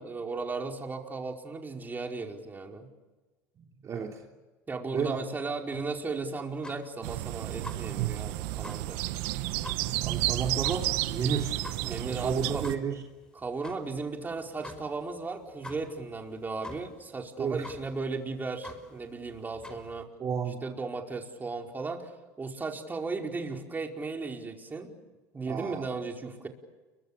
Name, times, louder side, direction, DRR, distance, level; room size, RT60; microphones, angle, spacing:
voice 1, 0.0-2.9 4.7-9.0 11.8-12.6 13.3-20.1 20.6-22.1 22.4-24.9 25.3-26.5, right 4 dB, 20° right, 2 dB, 4.9 m, -36 dB
voice 2, 3.8-4.2 4.9-5.2 10.0-11.6 11.9-13.0 17.4-17.6 20.2-20.6 25.5-25.9, right 6 dB, 40° right, 1 dB, 3.2 m, -32 dB
sound 1, 5.7-20.0, left 1 dB, 10° left, 5.5 m, -49 dB
sound 2, 7.0-12.8, right 17 dB, 75° right, 1.4 m, -31 dB
30.0 x 24.0 x 6.9 m, 1.2 s
supercardioid pair, 90°, 8 cm